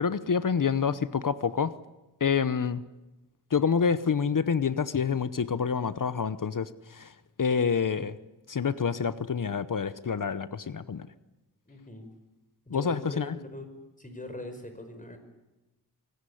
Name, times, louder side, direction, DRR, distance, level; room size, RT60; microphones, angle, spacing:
voice 1, 0.0-1.7 2.2-2.8 3.5-7.1 7.4-8.1 8.5-11.1 12.7-13.4, left 6 dB, 55° left, 15 dB, 0.9 m, -27 dB
voice 2, 11.7-12.1 12.7-13.7 14.0-15.2, left 1 dB, 20° left, 7 dB, 5.2 m, -41 dB
24.0 x 18.5 x 10.0 m, 1.0 s
wide cardioid pair, 85°, 39 cm